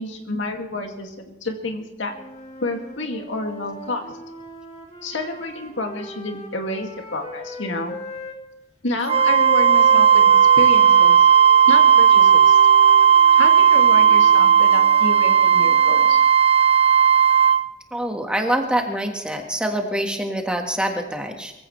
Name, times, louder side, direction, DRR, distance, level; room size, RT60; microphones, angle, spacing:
voice 1, 0.0-2.1 2.6-4.2 5.0-8.0 8.8-11.2 11.7-12.6 13.3-16.2, left 2 dB, 80° left, 3 dB, 2.2 m, -29 dB
sound 1, 2.1-8.4 9.1-16.2, left 2 dB, 35° left, 2.4 m, -38 dB
Wind instrument woodwind instrument, 9.1-17.6, right 8 dB, 30° right, 0.4 m, -14 dB
voice 2, 17.9-21.5, right 1 dB, 5° right, 2 dB, 1.5 m, -25 dB
23.0 x 15.5 x 3.2 m, 0.91 s
head